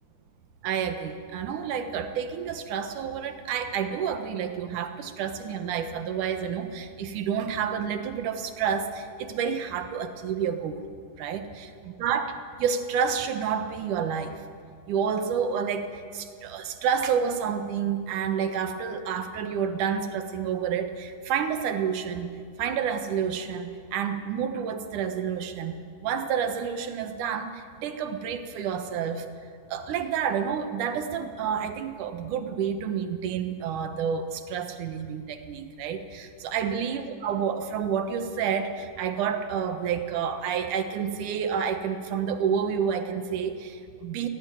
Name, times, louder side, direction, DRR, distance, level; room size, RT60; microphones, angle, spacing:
voice 1, 0.6-10.9 11.2-14.4 14.9-25.7 26.0-29.3 29.7-44.3, right 7 dB, 75° right, 8 dB, 2.7 m, -29 dB
18.5 x 17.0 x 9.4 m, 2.2 s
omnidirectional pair, 3.6 m